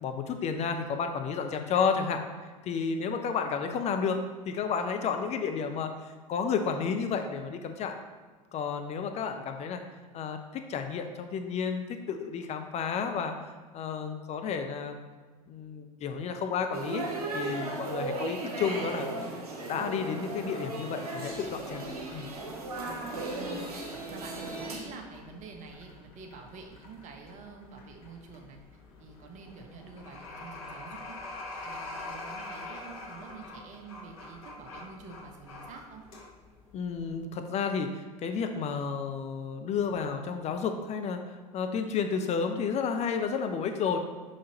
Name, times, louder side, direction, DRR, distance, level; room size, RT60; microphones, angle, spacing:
voice 1, 0.0-2.2 2.6-8.0 8.5-9.8 10.1-13.3 13.7-15.0 15.5-17.1 17.3-19.3 19.7-21.8 22.1-22.3 36.7-44.0, left 6 dB, 35° left, 6 dB, 0.6 m, -31 dB
sound 1, 16.7-24.8, right 2 dB, 75° right, 1.3 m, -36 dB
sound 2, 21.2-37.2, left 2 dB, 65° left, 1.6 m, -46 dB
voice 2, 23.3-28.6 29.0-31.2 31.5-36.0, right 4 dB, 40° right, 3 dB, 1.1 m, -47 dB
6.3 x 5.7 x 3.0 m, 1.4 s
figure-of-eight pair, 75°, 19 cm